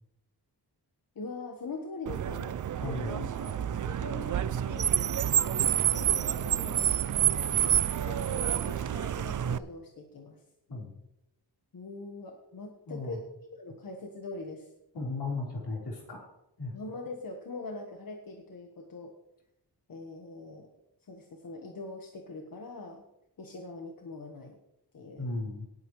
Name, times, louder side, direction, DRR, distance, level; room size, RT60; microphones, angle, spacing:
voice 1, 1.1-2.6 2.8-4.4 4.7-7.8 8.0-10.4 11.7-14.7 16.7-19.1 19.9-20.7 21.1-23.0 23.4-24.6 24.9-25.3, left 3 dB, 55° left, 2 dB, 1.3 m, -43 dB
Car, 2.1-9.6, right 10 dB, 50° right, 0.4 m, -28 dB
voice 2, 2.8-3.2 10.7-10.9 12.9-13.2 14.9-16.3 16.6-16.7 25.2-25.7, left 2 dB, 80° left, -3 dB, 4.2 m, -35 dB
18.0 x 9.0 x 3.2 m, 0.86 s
wide cardioid pair, 175°, 40 cm